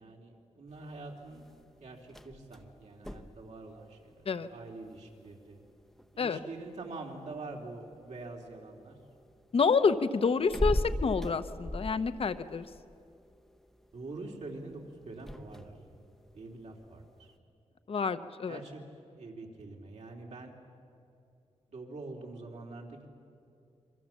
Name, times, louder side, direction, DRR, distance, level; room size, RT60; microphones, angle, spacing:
voice 1, 0.0-1.4 1.8-4.2 4.5-5.6 6.1-9.0 13.9-15.7 16.3-17.3 18.5-18.8 19.1-20.5 21.7-23.1, right 3 dB, 70° right, 0 dB, 3.4 m, -45 dB
sound 1, 0.7-17.4, equal, ahead, 0.8 m, -42 dB
voice 2, 9.5-12.7 17.9-18.6, left 5 dB, 55° left, 12 dB, 0.9 m, -28 dB
27.5 x 24.0 x 7.3 m, 2.6 s
wide cardioid pair, 150°, 12 cm